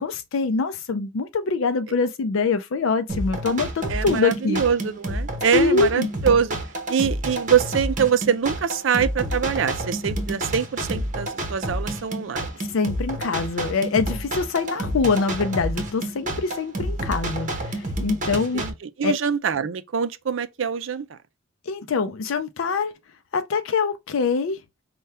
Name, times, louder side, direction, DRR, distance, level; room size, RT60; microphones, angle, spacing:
voice 1, 0.0-4.6 5.5-6.1 12.6-18.6 19.0-19.1 21.7-22.9 23.3-24.6, left 4 dB, 90° left, 0.5 m, -24 dB
sound 1, 3.1-18.7, right 1 dB, 40° right, 1.0 m, -29 dB
voice 2, 3.9-6.6 6.9-12.5 18.3-21.2, right 7 dB, 70° right, 0.5 m, -24 dB
5.4 x 2.3 x 3.3 m
head